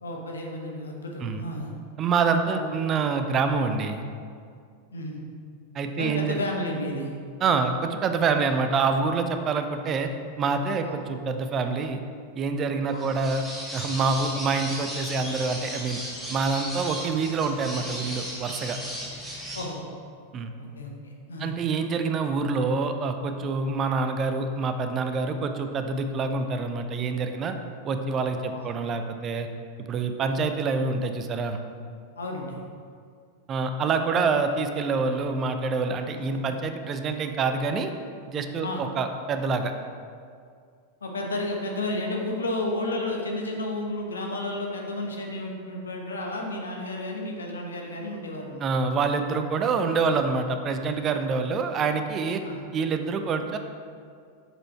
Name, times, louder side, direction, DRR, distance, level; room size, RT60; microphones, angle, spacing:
voice 1, 0.0-1.7 2.5-2.7 4.9-5.2 6.0-7.1 10.8-10.9 12.9-13.1 14.2-14.3 19.5-19.8 20.8-21.6 28.5-28.6 32.2-32.6 34.2-34.3 36.1-36.4 38.6-38.9 41.0-48.7 52.4-52.7, left 1 dB, 70° left, 1 dB, 1.0 m, -32 dB
voice 2, 2.0-4.0 5.7-6.4 7.4-10.1 10.4-12.0 12.3-13.5 13.7-16.0 16.3-18.8 20.3-20.5 21.4-27.5 27.8-29.5 29.8-31.6 33.5-37.9 38.3-39.7 48.6-52.4 52.7-53.6, right 4 dB, 30° right, 7 dB, 0.5 m, -26 dB
sound 1, 12.9-19.6, equal, ahead, 1.5 m, -36 dB
6.4 x 5.0 x 4.4 m, 2.2 s
figure-of-eight pair, 90°, 0 cm